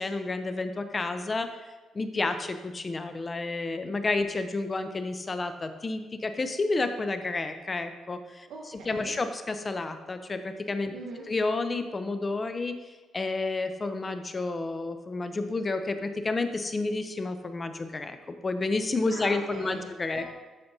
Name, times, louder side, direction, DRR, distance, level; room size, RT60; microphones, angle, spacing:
voice 1, 0.0-1.5 1.9-8.5 8.9-10.9 11.3-12.8 13.1-20.2, left 3 dB, 30° left, 9 dB, 0.5 m, -30 dB
voice 2, 8.5-9.1 10.9-11.3 19.1-20.2, right 3 dB, 75° right, -3 dB, 1.0 m, -42 dB
11.5 x 5.1 x 2.7 m, 1.2 s
cardioid pair, 90°, 0 cm